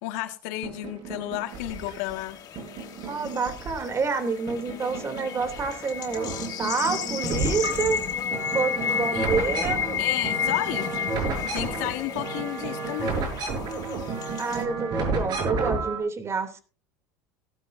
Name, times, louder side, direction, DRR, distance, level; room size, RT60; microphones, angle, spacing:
voice 1, 0.0-2.4 9.1-9.3 10.0-11.1 11.5-13.2, left 16 dB, 75° left, 8 dB, 1.9 m, -32 dB
sound 1, 0.6-2.1 2.6-4.1 4.5-5.8 6.0-16.0, right 3 dB, 55° right, 6.8 m, -32 dB
sound 2, 1.5-14.6, left 9 dB, 50° left, 3.9 m, -40 dB
voice 2, 3.1-8.0 8.5-9.8 14.4-16.6, right 5 dB, 35° right, 8 dB, 3.2 m, -28 dB
sound 3, 4.5-13.5, left 8 dB, 35° left, 0.9 m, -31 dB
17.5 x 12.5 x 2.8 m, 0.36 s
supercardioid pair, 95°, 8 cm